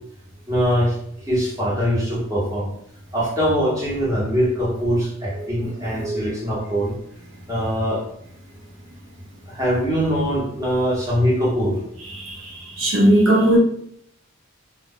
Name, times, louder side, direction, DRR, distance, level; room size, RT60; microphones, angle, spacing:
voice 1, 0.5-1.0 1.3-2.7 3.1-6.9 7.5-8.0 9.5-11.8, equal, 15° right, 0.9 m, -22 dB
voice 2, 5.4-5.7 6.0-6.2 12.1-13.6, right 1 dB, 70° right, 0.5 m, -19 dB
2.3 x 2.0 x 3.5 m
head